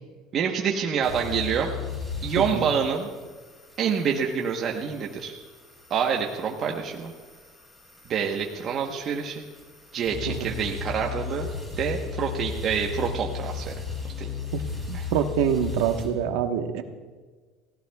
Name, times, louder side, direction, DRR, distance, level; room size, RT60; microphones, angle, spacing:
voice 1, 0.3-1.7 2.2-3.1 3.8-5.3 5.9-7.1 8.1-9.4 9.9-11.5 11.8-13.7 14.2-14.3 14.9-15.0, right 7 dB, 35° right, 0 dB, 1.0 m, -27 dB
sound 1, 1.0-16.1, left 6 dB, 15° left, 5.5 m, -36 dB
voice 2, 2.4-2.7 10.3-10.4 14.5-14.6 14.9-16.8, right 8 dB, 75° right, 6 dB, 1.1 m, -26 dB
29.5 x 16.5 x 2.3 m, 1.4 s
cardioid pair, 160°, 0 cm